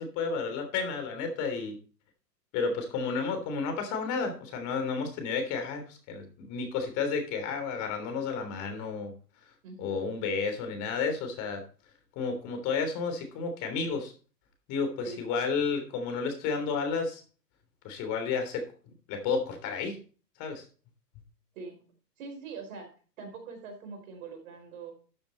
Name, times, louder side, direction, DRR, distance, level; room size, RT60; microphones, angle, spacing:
voice 1, 0.0-1.8 2.5-9.1 9.8-11.6 12.2-14.1 14.7-17.2 17.8-18.7 19.1-20.0 20.4-20.6, left 5 dB, 35° left, 6 dB, 3.4 m, -31 dB
voice 2, 9.6-10.1 15.0-15.2 21.5-21.8 22.2-22.9 23.2-24.9, right 4 dB, 55° right, 5 dB, 4.7 m, -43 dB
12.5 x 7.1 x 4.0 m, 0.39 s
hypercardioid pair, 120°, 50 cm